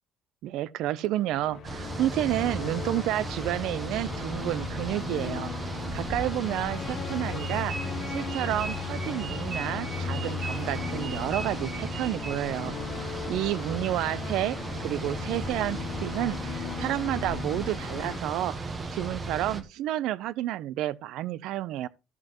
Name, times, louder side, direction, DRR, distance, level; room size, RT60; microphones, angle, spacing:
voice 1, 0.4-5.5 5.9-7.8 8.1-12.8 13.3-14.6 14.8-21.9, right 14 dB, 70° right, 0.5 m, -30 dB
sound 1, 1.2-18.2, left 8 dB, 45° left, 0.8 m, -37 dB
sound 2, 1.6-19.6, right 3 dB, 25° right, 1.1 m, -36 dB
sound 3, 7.4-12.7, right 4 dB, 40° right, 1.7 m, -40 dB
13.5 x 7.6 x 3.0 m
cardioid pair, 160°, 0 cm